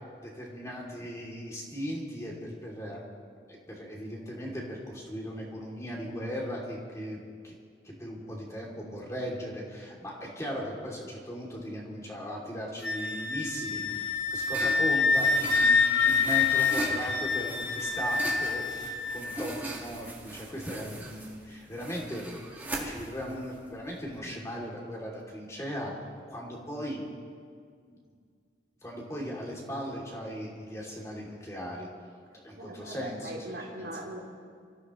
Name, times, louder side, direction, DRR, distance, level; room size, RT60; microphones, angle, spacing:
voice 1, 0.2-3.0 3.5-7.2 7.4-7.5 7.8-22.2 22.7-25.9 26.3-27.0 28.8-31.9 32.4-33.3 33.8-33.9, equal, 20° left, -3 dB, 2.9 m, -38 dB
Wind instrument woodwind instrument, 12.8-19.2, left 4 dB, 75° left, 1.4 m, -26 dB
sound 1, 13.9-24.3, right 1 dB, 10° right, 1.9 m, -40 dB
voice 2, 32.6-34.2, right 1 dB, 85° right, -3 dB, 3.2 m, -40 dB
26.0 x 14.5 x 3.2 m, 2.1 s
head